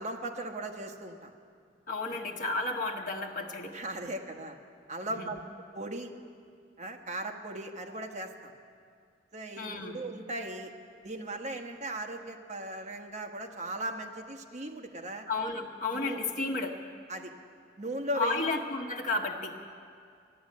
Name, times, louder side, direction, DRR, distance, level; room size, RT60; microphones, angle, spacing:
voice 1, 0.0-1.3 2.1-2.2 3.7-4.6 4.9-6.1 6.8-8.5 9.3-10.7 11.0-15.2 15.9-16.2 17.1-17.3 17.8-18.4, right 1 dB, 40° right, 3 dB, 1.2 m, -38 dB
voice 2, 1.9-3.7 5.2-5.3 9.6-10.0 15.3-16.8 18.1-19.5, left 3 dB, 45° left, 2 dB, 1.4 m, -32 dB
15.0 x 10.5 x 8.5 m, 2.3 s
head